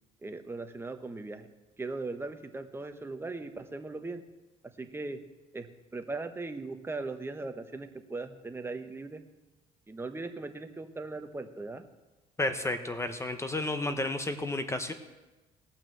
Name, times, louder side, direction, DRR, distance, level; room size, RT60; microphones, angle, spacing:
voice 1, 0.2-1.5 1.8-4.2 4.6-5.2 5.5-9.2 9.9-11.8, right 3 dB, 15° right, 7 dB, 1.1 m, -39 dB
voice 2, 12.4-14.9, left 2 dB, 15° left, 8 dB, 1.0 m, -32 dB
17.5 x 6.0 x 7.8 m, 1.1 s
cardioid pair, 110°, 17 cm